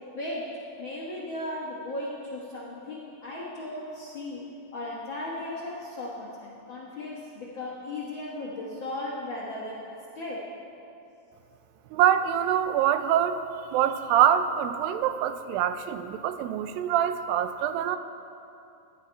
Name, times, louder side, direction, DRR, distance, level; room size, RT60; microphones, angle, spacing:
voice 1, 0.1-0.5 0.8-4.4 4.7-10.4, left 1 dB, 65° left, -5 dB, 1.2 m, -36 dB
voice 2, 11.9-13.4 13.7-18.0, right 10 dB, 90° right, 10 dB, 2.4 m, -24 dB
14.0 x 10.5 x 4.5 m, 2.7 s
omnidirectional pair, 4.0 m